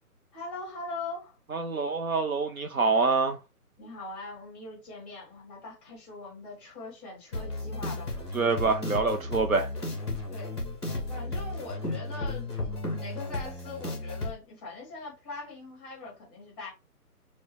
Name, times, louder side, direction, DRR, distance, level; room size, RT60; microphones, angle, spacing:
voice 1, 0.3-1.4 3.8-8.1 10.3-10.6 11.1-16.7, left 3 dB, ahead, 2.3 m, -41 dB
voice 2, 1.5-3.4 8.3-9.7, right 4 dB, 60° right, 0.7 m, -26 dB
sound 1, 7.3-14.3, left 2 dB, 15° left, 0.8 m, -34 dB
4.6 x 2.3 x 3.1 m
figure-of-eight pair, 145°, 46 cm